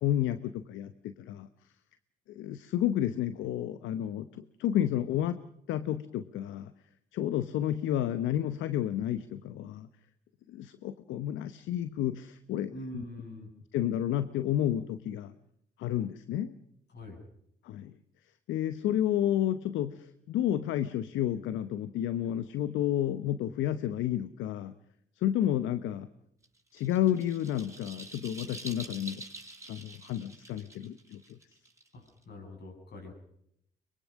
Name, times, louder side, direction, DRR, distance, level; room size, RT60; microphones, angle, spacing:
voice 1, 0.0-1.5 2.3-5.4 5.7-6.7 7.1-9.9 10.5-13.0 13.7-15.3 15.8-16.5 17.6-17.9 18.5-24.7 25.2-26.1 26.7-29.2 29.7-31.4, left 11 dB, 80° left, 13 dB, 0.8 m, -31 dB
voice 2, 12.7-13.5 16.9-17.2 31.9-33.1, left 1 dB, 60° left, 3 dB, 7.9 m, -44 dB
sound 1, 26.4-32.2, right 2 dB, 15° right, 5.2 m, -46 dB
23.5 x 22.0 x 6.3 m, 0.73 s
supercardioid pair, 50°, 20 cm